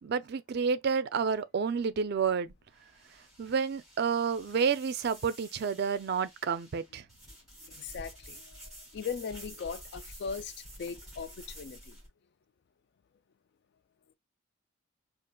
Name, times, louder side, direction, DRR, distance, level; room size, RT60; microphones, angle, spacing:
voice 1, 0.0-2.5 3.4-7.0, right 6 dB, 55° right, 0.4 m, -30 dB
sound 1, 1.7-12.1, equal, ahead, 2.9 m, -50 dB
voice 2, 7.6-12.0, left 6 dB, 60° left, 0.4 m, -39 dB
5.1 x 2.5 x 2.2 m
head